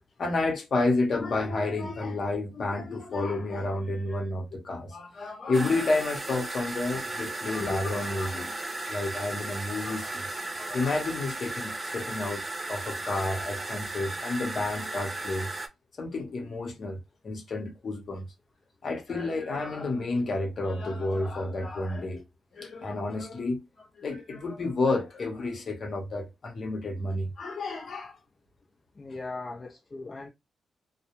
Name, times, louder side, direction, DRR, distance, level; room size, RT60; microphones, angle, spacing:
voice 1, 0.2-8.5 8.9-10.3 10.6-12.4 12.7-15.5 16.0-17.0 17.2-18.2 18.8-22.2 22.5-28.1, left 2 dB, 55° left, 0.8 m, -30 dB
sound 1, 5.5-15.7, right 2 dB, 25° right, 0.4 m, -35 dB
voice 2, 29.0-30.3, left 3 dB, 30° left, 0.5 m, -39 dB
2.3 x 2.0 x 2.9 m
cardioid pair, 90°, 0 cm